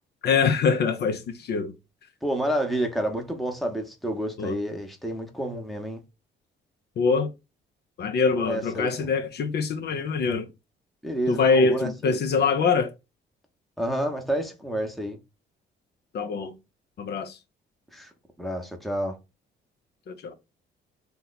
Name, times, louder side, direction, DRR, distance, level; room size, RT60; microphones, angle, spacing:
voice 1, 0.2-1.7 4.4-4.6 7.0-7.3 8.0-10.5 11.3-12.9 16.1-16.5 17.0-17.4 20.1-20.4, left 5 dB, 55° left, 0.5 m, -24 dB
voice 2, 2.2-6.0 8.4-9.1 11.0-12.2 13.8-15.2 17.9-18.1 18.4-19.2, right 1 dB, ahead, 0.8 m, -29 dB
2.8 x 2.2 x 3.9 m
cardioid pair, 90°, 20 cm